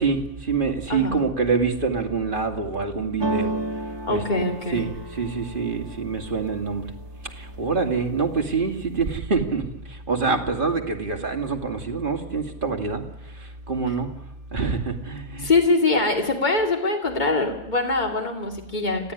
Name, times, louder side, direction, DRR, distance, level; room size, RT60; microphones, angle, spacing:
voice 1, 0.0-3.5 4.1-4.2 4.7-6.9 7.2-14.1 14.5-15.5, right 4 dB, 40° right, 4 dB, 2.6 m, -26 dB
voice 2, 0.9-1.2 4.1-4.9 15.4-19.1, left 3 dB, 30° left, 3 dB, 3.1 m, -23 dB
sound 1, 3.2-7.1 7.5-8.1 8.4-9.2, right 2 dB, 20° right, 1.3 m, -32 dB
27.0 x 15.5 x 10.0 m, 0.87 s
omnidirectional pair, 1.4 m